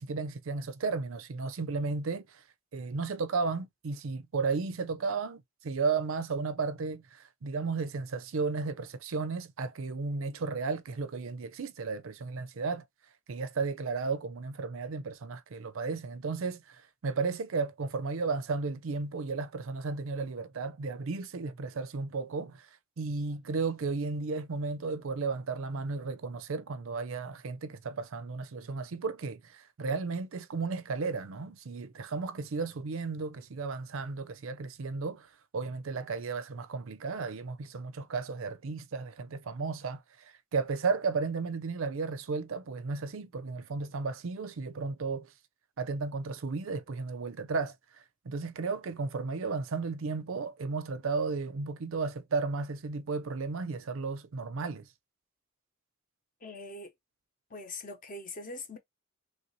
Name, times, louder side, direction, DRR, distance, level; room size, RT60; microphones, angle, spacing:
voice 1, 0.0-2.4 2.7-12.8 13.3-22.7 23.0-45.3 45.8-54.9, right 4 dB, 70° right, 0.5 m, -34 dB
voice 2, 56.4-56.9 57.5-58.8, left 2 dB, 40° left, 0.9 m, -42 dB
3.2 x 2.7 x 2.8 m
head